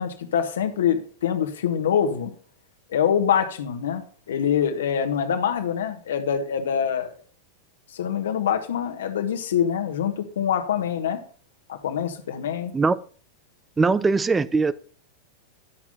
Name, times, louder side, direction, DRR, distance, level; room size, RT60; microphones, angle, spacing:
voice 1, 0.0-2.3 2.9-7.1 7.9-11.2 11.7-12.7, left 8 dB, 60° left, 1.3 m, -25 dB
voice 2, 13.8-14.7, right 4 dB, 15° right, 0.4 m, -20 dB
11.5 x 6.1 x 5.5 m
figure-of-eight pair, 90°, 0 cm